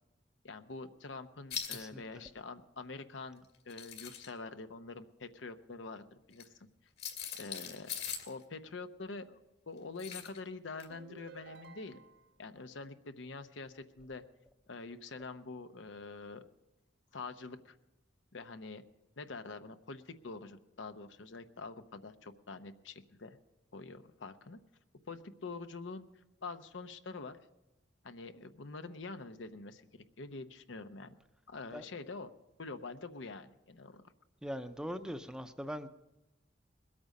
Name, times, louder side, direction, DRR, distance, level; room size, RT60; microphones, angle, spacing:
voice 1, 0.4-6.7 7.3-9.4 9.7-12.0 12.4-14.2 14.7-16.4 17.1-17.8 18.3-18.8 19.2-23.4 23.7-24.6 25.0-26.0 26.4-27.4 28.0-31.2 31.5-32.3 32.6-34.1, left 3 dB, 90° left, 9 dB, 0.8 m, -46 dB
sound 1, 1.5-1.8 3.5-4.3 6.3-6.4 7.0-8.3 10.0-10.4 10.8-10.9, left 7 dB, 60° left, 2.1 m, -41 dB
sound 2, 10.9-12.4, right 4 dB, 65° right, 0.7 m, -54 dB
voice 2, 34.4-35.9, equal, 5° right, 10 dB, 0.5 m, -41 dB
21.0 x 8.7 x 5.3 m, 0.99 s
head